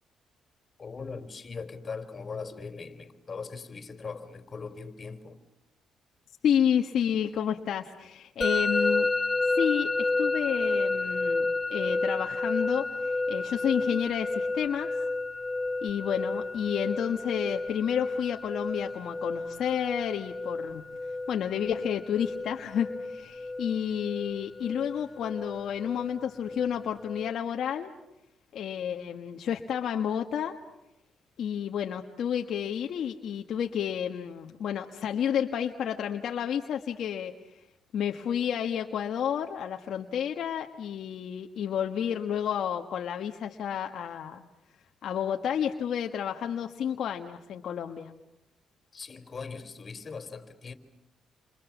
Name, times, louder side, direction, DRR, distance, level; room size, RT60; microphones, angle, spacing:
voice 1, 0.8-5.4 48.9-50.7, left 5 dB, 40° left, 3.8 m, -40 dB
voice 2, 6.4-9.1 9.4-14.9 15.8-20.8 21.3-27.9 28.5-30.6 31.4-37.3 37.9-44.4 45.0-48.1, left 9 dB, 70° left, 1.6 m, -30 dB
Musical instrument, 8.4-27.3, left 3 dB, 20° left, 1.0 m, -31 dB
30.0 x 26.0 x 7.3 m
cardioid pair, 90°, 0 cm